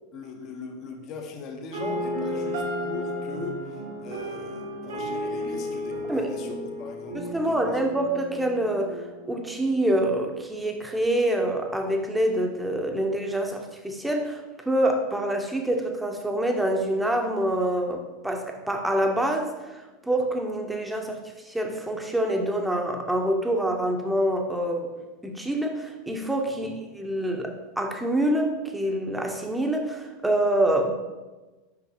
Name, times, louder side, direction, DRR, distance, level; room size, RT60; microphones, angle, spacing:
voice 1, 0.1-7.7 26.5-26.7, left 3 dB, 40° left, 4 dB, 0.9 m, -40 dB
sound 1, 1.7-9.7, equal, 65° right, 1.3 m, -33 dB
voice 2, 7.1-9.0 9.3-21.2 21.4-24.9 25.2-30.9, right 1 dB, 5° right, 2 dB, 0.8 m, -26 dB
6.0 x 5.5 x 2.9 m, 1.2 s
figure-of-eight pair, 85°, 0 cm